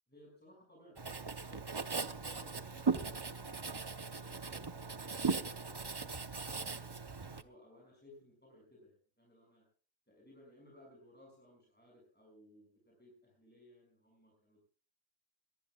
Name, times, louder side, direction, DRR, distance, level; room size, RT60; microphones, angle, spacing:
voice 1, 0.1-6.9 7.3-9.6 10.1-14.6, left 1 dB, 5° left, -2 dB, 6.1 m, -62 dB
Writing, 1.0-7.4, right 4 dB, 25° right, 0.5 m, -38 dB
23.0 x 18.5 x 2.4 m, 0.41 s
omnidirectional pair, 1.4 m